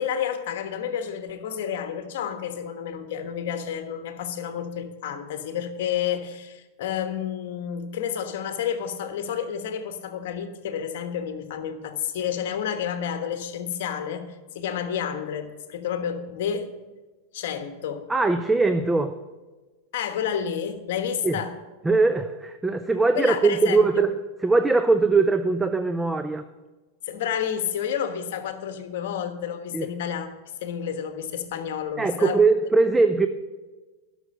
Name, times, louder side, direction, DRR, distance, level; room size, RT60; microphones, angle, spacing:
voice 1, 0.0-16.7 17.3-18.1 19.9-21.6 23.1-23.9 27.0-30.3 30.6-32.4, left 8 dB, 70° left, 1.3 m, -30 dB
voice 2, 18.1-19.2 21.2-21.4 21.8-26.4 29.7-29.9 32.0-33.3, right 3 dB, 10° right, 0.5 m, -21 dB
12.0 x 6.3 x 6.6 m
hypercardioid pair, 115°, 0 cm